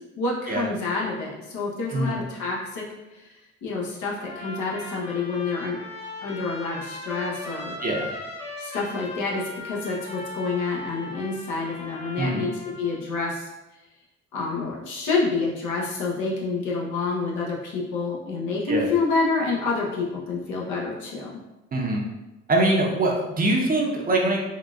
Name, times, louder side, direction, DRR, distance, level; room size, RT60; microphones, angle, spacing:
voice 1, 0.2-2.8 3.1-3.2 3.6-5.8 6.2-7.7 8.6-13.5 14.3-21.4, left 4 dB, 80° left, -3 dB, 0.9 m, -28 dB
Trumpet, 4.2-13.0, left 2 dB, 20° left, 0.6 m, -38 dB
voice 2, 21.7-22.0 22.5-24.4, right 2 dB, 30° right, -1 dB, 0.6 m, -23 dB
3.7 x 2.4 x 2.3 m, 1.0 s
cardioid pair, 90°, 30 cm